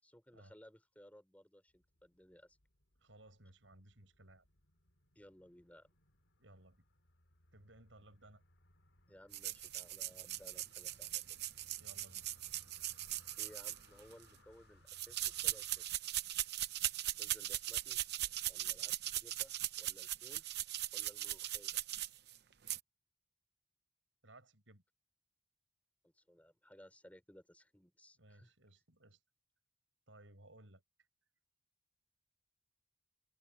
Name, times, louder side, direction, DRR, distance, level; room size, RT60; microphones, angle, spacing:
voice 1, 0.0-2.6 5.1-5.9 9.1-11.2 13.4-15.9 17.1-18.0 18.5-20.5 20.9-21.8 26.1-28.5, equal, 10° left, 4.5 m, -60 dB
sound 1, 1.7-15.8, left 2 dB, 75° left, 3.1 m, -68 dB
voice 2, 3.0-4.4 6.4-6.8 7.5-8.4 11.8-12.3 24.2-24.8 28.2-29.2 30.1-30.8, right 1 dB, 80° right, 7.2 m, -60 dB
sound 2, 9.3-14.2 14.9-22.4 22.7-22.8, right 14 dB, 55° right, 0.8 m, -39 dB
head